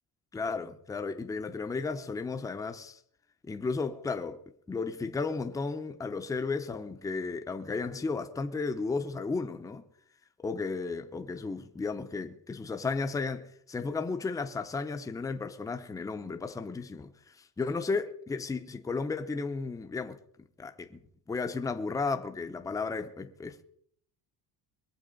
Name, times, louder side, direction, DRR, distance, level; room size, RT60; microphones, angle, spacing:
voice 1, 0.3-3.0 3.5-4.4 4.7-9.8 10.4-17.1 17.6-20.2 20.6-21.0 21.3-23.6, left 4 dB, 10° left, 0.6 m, -34 dB
22.5 x 7.6 x 5.2 m
cardioid pair, 165°, 43 cm